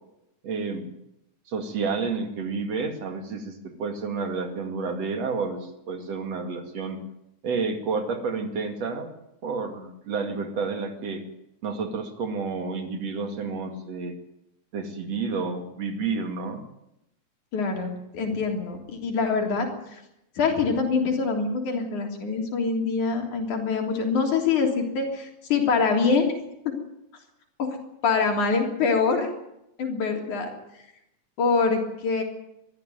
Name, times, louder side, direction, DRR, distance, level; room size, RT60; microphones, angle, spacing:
voice 1, 0.4-0.9 1.5-7.0 7.4-9.1 9.4-11.2 11.6-14.2 14.7-16.6, right 4 dB, 60° right, 6 dB, 3.4 m, -30 dB
voice 2, 17.5-20.0 20.4-26.3 27.6-27.7 28.0-29.3 29.8-30.8 31.4-32.2, left 4 dB, 80° left, 3 dB, 4.8 m, -25 dB
22.0 x 14.5 x 9.3 m, 0.84 s
omnidirectional pair, 3.4 m